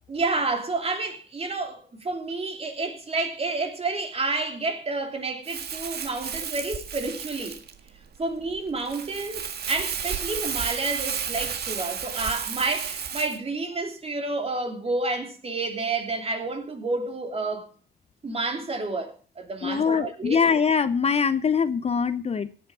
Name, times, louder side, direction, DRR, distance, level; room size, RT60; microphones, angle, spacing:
voice 1, 0.1-7.6 8.2-17.7 18.2-20.5, right 3 dB, 35° right, 2.9 m, -30 dB
Crumpling crinkling, 5.4-13.4, right 7 dB, 60° right, 1.6 m, -32 dB
voice 2, 19.6-22.5, left 6 dB, 35° left, 0.6 m, -23 dB
16.5 x 8.6 x 4.9 m
cardioid pair, 125°, 19 cm